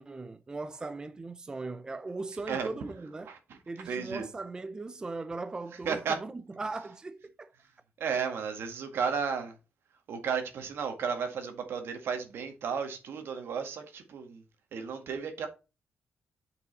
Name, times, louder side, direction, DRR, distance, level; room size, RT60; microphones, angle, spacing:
voice 1, 0.0-3.4 3.7-7.5, right 3 dB, 20° right, 0.4 m, -39 dB
voice 2, 3.9-4.3 5.9-6.2 8.0-9.5 10.1-14.4 14.7-15.5, right 6 dB, 75° right, 1.9 m, -33 dB
8.2 x 5.5 x 4.0 m
wide cardioid pair, 150°, 4 cm